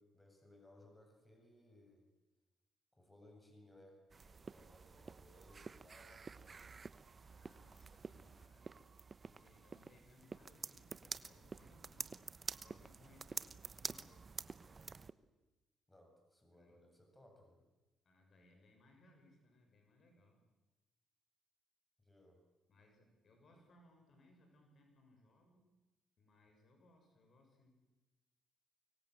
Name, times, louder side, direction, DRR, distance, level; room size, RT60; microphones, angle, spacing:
voice 1, 0.0-2.1 2.9-6.6 14.7-14.9 15.9-17.6 22.0-22.4 23.5-23.6, left 1 dB, 10° left, 2 dB, 7.8 m, -64 dB
sound 1, 4.1-15.1, right 4 dB, 35° right, 1.0 m, -49 dB
voice 2, 7.3-8.8 9.2-14.3 16.5-16.8 18.0-20.4 22.7-25.7 26.2-27.8, left 2 dB, 50° left, 3 dB, 7.1 m, -67 dB
24.5 x 24.0 x 8.0 m, 1.1 s
cardioid pair, 90°, 0 cm